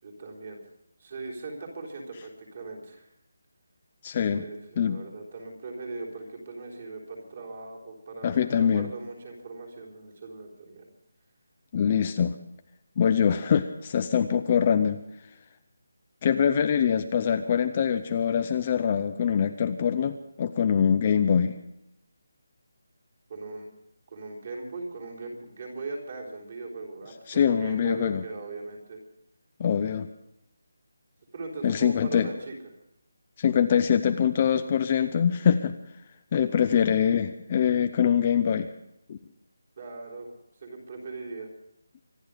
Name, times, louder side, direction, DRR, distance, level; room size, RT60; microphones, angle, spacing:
voice 1, 0.0-0.6 1.0-3.1 4.3-10.9 23.3-23.7 24.1-29.0 31.3-32.5 39.8-40.3 40.6-41.5, right 3 dB, 30° right, -1 dB, 3.7 m, -39 dB
voice 2, 4.0-4.4 4.8-5.0 8.2-8.9 11.7-12.4 13.0-15.0 16.2-21.5 27.3-28.2 29.6-30.1 31.6-32.3 33.4-35.7 36.3-38.7 39.1-39.2, left 8 dB, 20° left, 8 dB, 0.5 m, -24 dB
25.5 x 11.0 x 5.0 m, 0.84 s
figure-of-eight pair, 180°, 0 cm